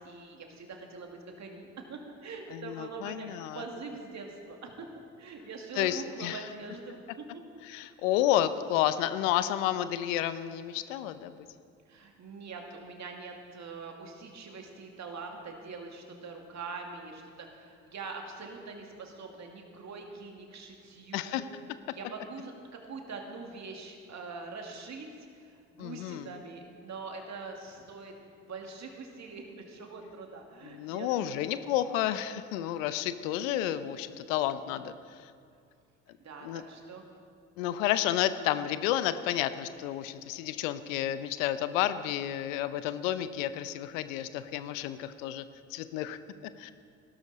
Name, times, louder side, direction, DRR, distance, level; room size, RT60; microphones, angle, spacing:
voice 1, 0.0-4.9 5.2-7.2 8.0-8.1 11.9-21.4 21.9-31.4 36.2-37.1, right 4 dB, 45° right, 2 dB, 2.4 m, -43 dB
voice 2, 2.5-3.6 5.8-6.4 7.7-11.3 21.1-21.4 25.8-26.3 30.6-34.9 36.4-36.6 37.6-45.4 45.7-46.2 46.6-46.7, left 12 dB, 75° left, 13 dB, 0.7 m, -31 dB
16.0 x 12.5 x 4.2 m, 2.3 s
hypercardioid pair, 60°, 39 cm